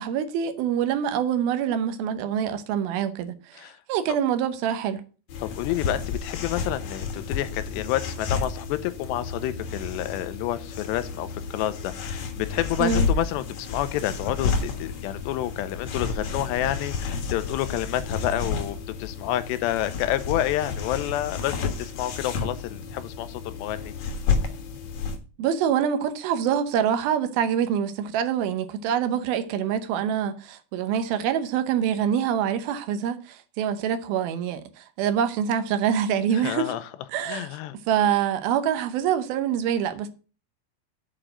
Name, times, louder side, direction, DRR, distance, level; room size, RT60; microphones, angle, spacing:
voice 1, 0.0-3.6 3.9-5.0 12.8-13.1 25.4-36.7 37.1-37.5 37.9-40.1, right 8 dB, 75° right, 2.4 m, -25 dB
sound 1, 5.3-25.2, left 5 dB, 60° left, 2.0 m, -31 dB
voice 2, 5.4-24.1 36.3-36.9 37.3-37.7, left 13 dB, 90° left, 2.9 m, -29 dB
8.9 x 4.9 x 7.6 m
omnidirectional pair, 4.9 m